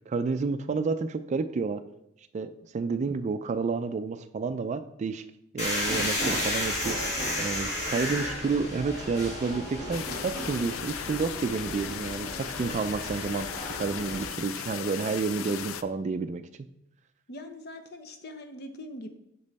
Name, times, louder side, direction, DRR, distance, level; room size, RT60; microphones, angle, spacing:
voice 1, 0.1-1.8 2.3-5.2 5.5-7.0 7.4-13.5 13.8-16.4, right 4 dB, 35° right, 11 dB, 0.3 m, -30 dB
sound 1, 5.6-14.2, left 1 dB, 35° left, 2.1 m, -33 dB
sound 2, 9.9-15.8, left 9 dB, 85° left, 0.4 m, -37 dB
voice 2, 17.3-19.1, left 1 dB, 55° left, 7 dB, 0.8 m, -42 dB
6.1 x 5.3 x 4.1 m, 0.80 s
head